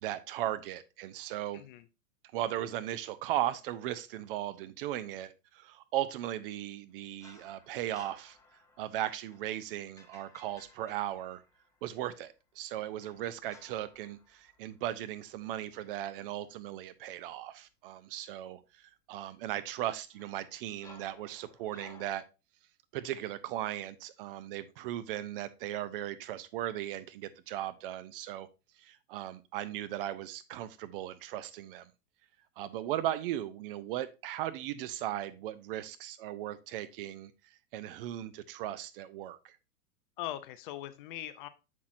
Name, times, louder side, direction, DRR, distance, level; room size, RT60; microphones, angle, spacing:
voice 1, 0.0-1.6 2.3-8.4 8.8-11.4 11.8-22.2 22.9-28.5 28.8-31.9 32.6-37.3 37.7-39.6, right 13 dB, 40° right, 13 dB, 0.4 m, -37 dB
voice 2, 1.5-1.9 40.2-41.5, left 13 dB, 35° left, 13 dB, 0.4 m, -41 dB
sound 1, 7.2-12.0 13.0-15.4 15.8-16.1 20.1-22.2, left 3 dB, 5° left, 1.1 m, -58 dB
7.3 x 6.0 x 2.6 m, 0.28 s
hypercardioid pair, 110°, 48 cm